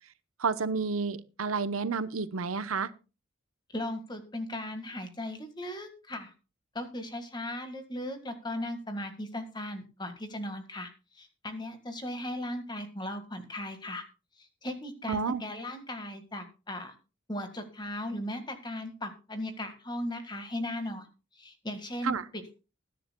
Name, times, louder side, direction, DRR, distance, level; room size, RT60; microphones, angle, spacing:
voice 1, 0.4-2.9 15.1-15.4 22.0-22.3, right 4 dB, 85° right, 13 dB, 0.9 m, -30 dB
voice 2, 3.7-6.3 6.7-14.0 14.4-16.9 17.3-21.1 21.3-22.6, left 1 dB, 20° left, 7 dB, 1.7 m, -37 dB
20.5 x 10.0 x 2.3 m, 0.31 s
head